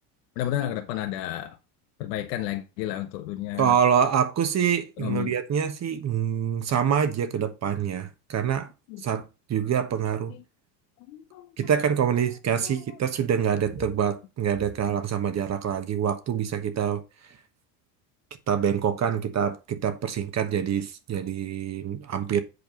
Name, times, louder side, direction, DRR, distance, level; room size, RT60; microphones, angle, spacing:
voice 1, 0.4-1.6 2.0-3.8 5.0-5.3 8.9-9.0 11.1-11.5 12.6-12.7 13.8-13.9, left 13 dB, 85° left, 1.3 m, -31 dB
voice 2, 3.6-8.7 9.0-10.3 11.6-17.0 18.5-22.4, right 8 dB, 35° right, 1.3 m, -26 dB
8.1 x 4.6 x 5.2 m
supercardioid pair, 115°, 48 cm